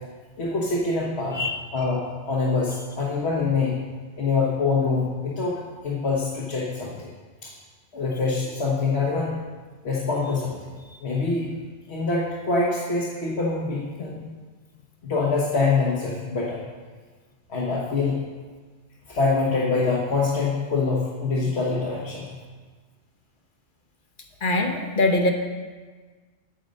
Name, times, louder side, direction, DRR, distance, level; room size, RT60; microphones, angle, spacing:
voice 1, 0.4-1.4 1.7-3.8 4.2-7.1 7.4-7.5 7.9-9.4 9.8-10.7 11.0-11.5 11.9-14.2 15.0-16.6 17.5-18.2 19.1-22.3, left 4 dB, 65° left, -4 dB, 1.5 m, -25 dB
voice 2, 24.4-25.3, left 2 dB, 50° left, 3 dB, 1.0 m, -22 dB
9.3 x 6.6 x 5.3 m, 1.4 s
omnidirectional pair, 1.2 m